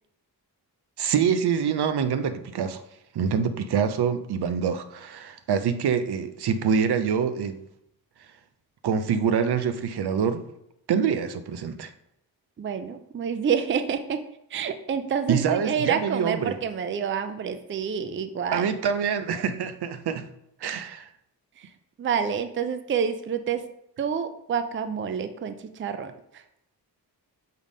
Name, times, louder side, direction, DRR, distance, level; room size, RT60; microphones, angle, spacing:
voice 1, 1.0-2.8 3.1-7.6 8.8-10.5 10.9-11.9 15.3-16.5 18.5-20.3 20.6-21.1, right 7 dB, 75° right, 10 dB, 0.6 m, -25 dB
voice 2, 12.6-14.2 14.5-18.7 21.6-23.7 24.0-26.4, right 7 dB, 30° right, 9 dB, 0.4 m, -28 dB
5.7 x 3.5 x 4.9 m, 0.80 s
wide cardioid pair, 140°, 40 cm